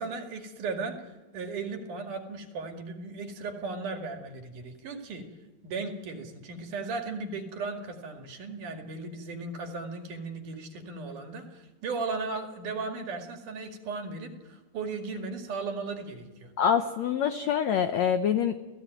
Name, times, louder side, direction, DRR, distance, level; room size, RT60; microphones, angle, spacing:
voice 1, 0.0-5.3 5.6-16.5, right 4 dB, 60° right, 4 dB, 3.4 m, -36 dB
voice 2, 16.6-18.6, left 8 dB, 80° left, 8 dB, 1.5 m, -25 dB
29.0 x 17.0 x 9.2 m, 1.2 s
omnidirectional pair, 4.4 m